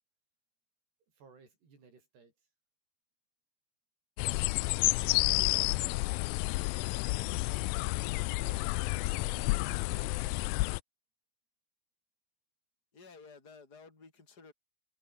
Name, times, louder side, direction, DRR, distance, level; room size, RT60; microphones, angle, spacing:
voice 1, 1.1-2.3 7.2-7.3 7.6-10.6, right 5 dB, 85° right, 9.2 m, -59 dB
sound 1, 4.2-10.8, left 22 dB, 85° left, 2.1 m, -30 dB
voice 2, 4.6-6.0 12.9-14.5, left 4 dB, 25° left, 5.4 m, -54 dB
omnidirectional pair, 4.7 m